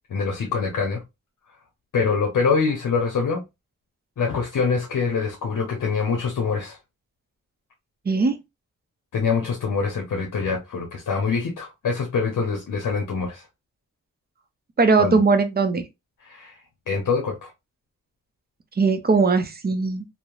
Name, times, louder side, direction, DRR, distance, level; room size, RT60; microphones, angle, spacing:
voice 1, 0.1-1.0 1.9-3.4 4.2-6.8 9.1-13.5 15.0-15.2 16.2-16.6 16.9-17.5, left 5 dB, 75° left, 0.7 m, -24 dB
voice 2, 8.1-8.4 14.8-15.8 18.8-20.0, right 4 dB, 30° right, 0.5 m, -19 dB
2.8 x 2.0 x 2.3 m
cardioid pair, 55°, 31 cm